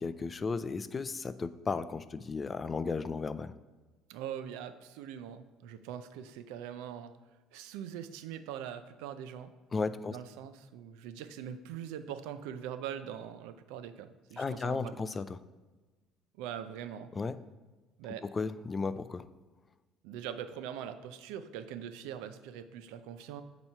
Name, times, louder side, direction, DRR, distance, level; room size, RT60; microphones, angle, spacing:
voice 1, 0.0-3.5 9.7-10.2 14.4-15.3 17.2-17.4 18.3-19.2, left 4 dB, 25° left, 13 dB, 0.3 m, -34 dB
voice 2, 4.1-7.1 7.5-9.5 10.0-15.1 16.4-17.1 18.0-18.2 20.0-23.4, right 9 dB, 90° right, 11 dB, 0.4 m, -42 dB
8.6 x 3.0 x 5.5 m, 1.2 s
cardioid pair, 120°, 0 cm